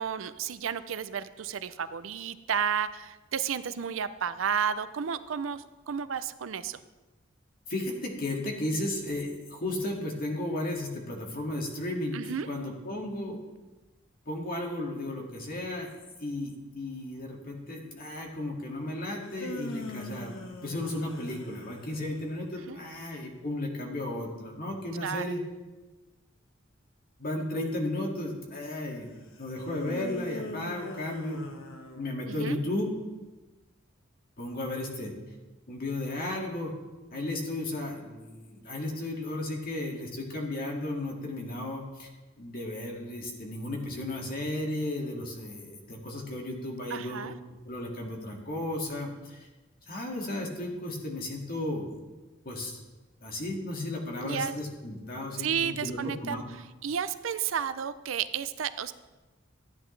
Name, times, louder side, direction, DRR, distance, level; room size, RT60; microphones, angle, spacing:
voice 1, 0.0-6.8 12.1-12.5 22.7-22.8 25.0-25.3 32.3-32.6 46.9-47.3 54.2-54.6 55.4-56.4 56.8-58.9, right 7 dB, 75° right, 13 dB, 0.5 m, -32 dB
voice 2, 7.7-13.4 14.3-15.9 16.2-20.3 20.6-25.4 27.2-29.1 29.4-31.4 32.0-32.8 34.4-35.1 35.7-36.7 37.1-42.1 42.4-47.3 47.7-49.5 49.9-51.9 52.5-52.8 53.2-56.4, left 1 dB, 50° left, 0 dB, 2.1 m, -34 dB
sound 1, 19.1-22.4 29.5-32.5, left 1 dB, 85° left, 1.1 m, -41 dB
14.0 x 9.8 x 3.3 m, 1.2 s
head